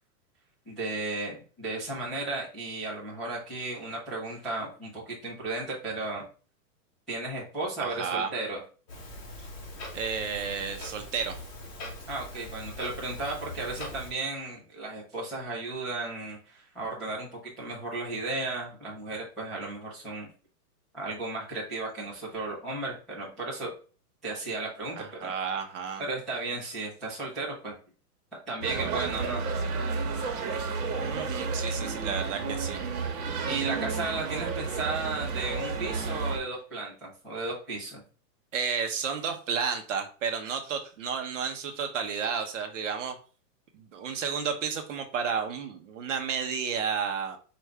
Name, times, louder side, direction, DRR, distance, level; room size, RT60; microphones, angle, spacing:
voice 1, 0.6-6.2 7.1-8.6 12.1-20.3 20.9-23.7 24.2-25.4 26.0-27.7 28.5-29.4 33.4-38.0, right 2 dB, ahead, -16 dB, 0.5 m, -34 dB
voice 2, 7.8-8.3 9.4-9.5 9.9-11.4 25.0-26.0 30.9-32.8 38.5-43.2 43.7-47.4, right 6 dB, 50° right, 5 dB, 0.9 m, -32 dB
Clock, 8.9-14.1, left 1 dB, 30° left, 1.2 m, -41 dB
sound 1, 28.6-36.4, right 4 dB, 70° right, 1.2 m, -31 dB
4.8 x 2.5 x 3.3 m, 0.38 s
hypercardioid pair, 170°, 47 cm